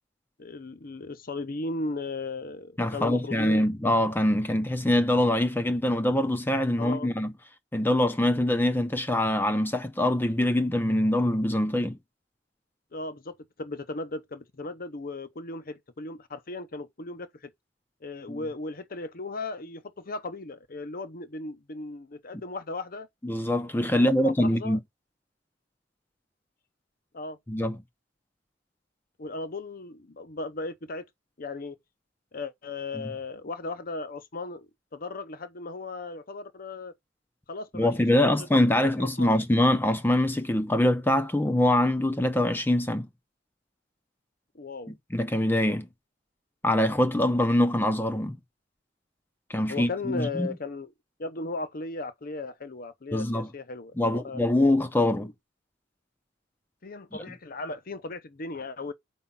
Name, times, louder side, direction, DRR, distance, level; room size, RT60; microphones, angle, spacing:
voice 1, 0.4-3.7 6.8-7.1 12.9-17.5 18.0-23.1 23.9-24.8 27.1-27.4 29.2-31.1 31.4-31.8 32.3-36.9 37.5-38.5 38.8-39.3 44.5-45.0 49.7-50.9 51.2-54.4 55.2-55.3 56.8-58.9, left 3 dB, 50° left, 0.8 m, -36 dB
voice 2, 2.8-7.3 7.7-12.0 18.3-18.4 23.2-24.8 27.5-27.8 37.7-43.1 45.1-45.9 46.6-48.4 49.5-50.5 53.1-53.5 54.0-55.3 57.1-57.2, left 1 dB, 10° left, 0.6 m, -24 dB
5.5 x 4.9 x 5.7 m
head